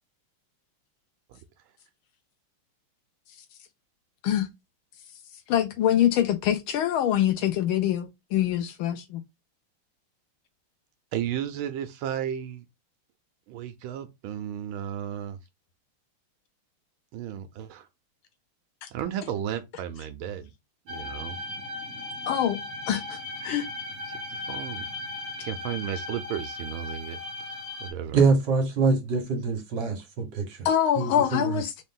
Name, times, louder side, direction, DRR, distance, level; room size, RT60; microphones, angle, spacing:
voice 1, 5.5-9.2 18.8-18.9 22.3-22.6 22.9-23.7 30.6-31.8, left 10 dB, 75° left, 1.4 m, -25 dB
voice 2, 11.1-12.6 13.5-15.4 17.1-17.9 18.9-20.5 20.9-21.4 24.1-24.2 24.5-24.8 25.4-28.2, right 10 dB, 75° right, 1.3 m, -34 dB
sound 1, 20.9-27.9, left 2 dB, 40° right, 1.2 m, -37 dB
voice 3, 28.1-30.6 31.0-31.6, right 4 dB, 60° right, 1.6 m, -24 dB
4.0 x 2.5 x 3.6 m
omnidirectional pair, 2.4 m